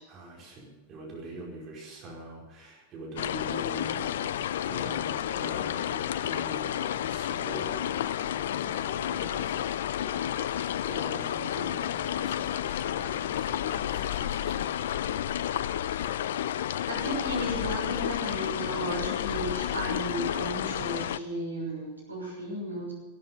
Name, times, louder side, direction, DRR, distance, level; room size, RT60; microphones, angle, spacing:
voice 1, 0.1-4.3 4.7-15.1, right 2 dB, 30° right, -2 dB, 4.8 m, -44 dB
sound 1, 3.2-21.2, left 11 dB, 60° left, 0.5 m, -31 dB
voice 2, 16.9-22.9, equal, 80° right, -2 dB, 6.0 m, -34 dB
16.5 x 12.0 x 6.6 m, 1.2 s
figure-of-eight pair, 90°, 0 cm